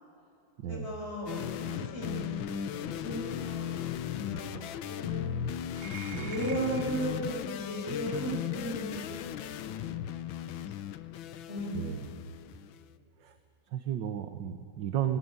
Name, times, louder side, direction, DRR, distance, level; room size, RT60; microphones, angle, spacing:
voice 1, 0.7-5.3 6.1-9.3 9.8-9.9 10.5-10.6 11.5-11.9 12.4-12.6, right 1 dB, 35° left, -3 dB, 6.0 m, -36 dB
sound 1, 1.3-12.8, left 10 dB, 90° left, 1.6 m, -37 dB
sound 2, 5.7-7.1 8.3-8.5 9.4-9.6, right 6 dB, 45° right, 0.6 m, -46 dB
voice 2, 11.7-12.2 13.2-13.4 13.7-15.2, right 10 dB, 70° right, 8 dB, 1.7 m, -34 dB
28.0 x 20.0 x 9.6 m, 2.8 s
omnidirectional pair, 2.1 m